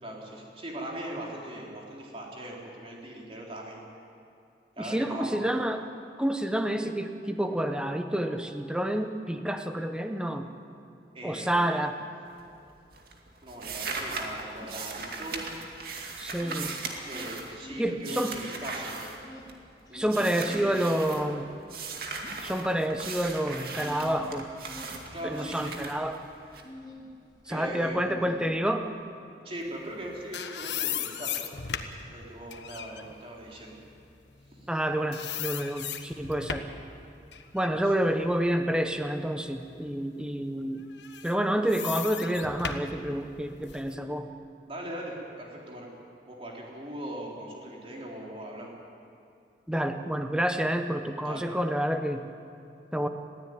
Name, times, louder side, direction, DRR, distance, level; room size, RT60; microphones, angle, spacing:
voice 1, 0.0-3.8 4.8-5.5 11.1-11.8 13.4-15.5 17.1-19.1 19.9-20.3 20.6-20.8 25.1-25.8 27.5-28.6 29.4-31.5 31.8-33.8 34.5-34.7 37.7-37.9 44.6-45.9 46.3-48.7 51.2-51.5, right 1 dB, 30° right, -2 dB, 3.9 m, -40 dB
voice 2, 4.8-5.8 6.2-10.5 11.2-12.0 16.2-16.8 17.8-18.4 19.9-21.5 22.4-24.5 25.2-26.2 27.5-28.9 34.7-36.7 37.5-40.8 41.2-44.3 49.7-52.3 52.9-53.1, right 1 dB, 5° right, 6 dB, 1.0 m, -28 dB
sound 1, 12.2-12.7 12.9-19.7 20.1-21.2 21.7-26.6, right 4 dB, 55° right, 2.4 m, -38 dB
sound 2, 13.6-13.7 13.9-15.9 16.2-18.1 18.4-27.1 27.4-28.9, left 1 dB, 25° left, 2.6 m, -47 dB
sound 3, 29.9-34.8 35.1-36.8 37.3-39.3 39.7-39.9 40.9-43.9, left 8 dB, 85° left, 1.3 m, -37 dB
21.0 x 15.5 x 9.4 m, 2.6 s
head